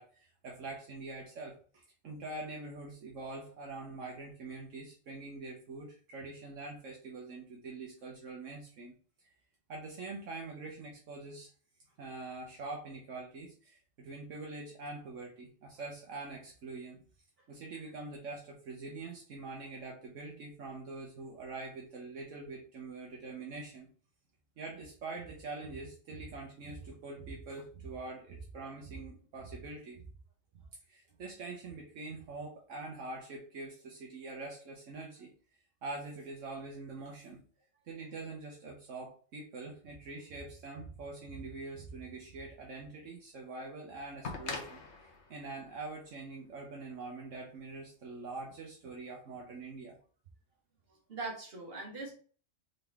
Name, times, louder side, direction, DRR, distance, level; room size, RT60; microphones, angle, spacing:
voice 1, 0.0-8.9 9.7-11.5 12.0-17.0 17.5-23.9 24.6-30.1 30.5-35.3 35.8-37.4 37.8-50.0, right 3 dB, 75° right, -1 dB, 1.2 m, -44 dB
sound 1, 42.8-42.9 44.2-47.1 48.3-48.4, left 4 dB, 60° left, 1.2 m, -44 dB
voice 2, 50.9-52.1, right 3 dB, 45° right, -2 dB, 1.8 m, -41 dB
4.0 x 3.8 x 3.5 m, 0.42 s
omnidirectional pair, 1.4 m